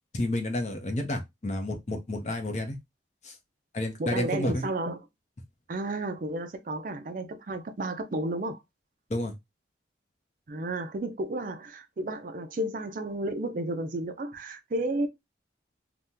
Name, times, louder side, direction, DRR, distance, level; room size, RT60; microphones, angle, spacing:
voice 1, 0.1-2.8 3.2-3.4 3.7-4.6 9.1-9.3, left 1 dB, 40° left, 0.6 m, -30 dB
voice 2, 4.0-5.0 5.7-8.6 10.5-15.1, right 2 dB, 45° right, 0.4 m, -32 dB
2.8 x 2.1 x 3.6 m
head